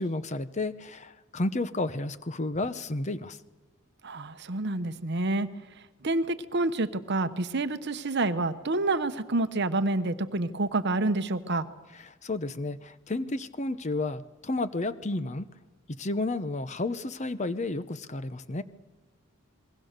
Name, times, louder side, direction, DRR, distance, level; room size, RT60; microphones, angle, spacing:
voice 1, 0.0-3.4 12.2-15.5 16.0-18.6, left 2 dB, 35° left, 13 dB, 0.8 m, -31 dB
voice 2, 4.0-5.5 6.0-11.7, right 2 dB, 55° right, 11 dB, 1.0 m, -28 dB
27.5 x 21.5 x 6.7 m, 1.3 s
head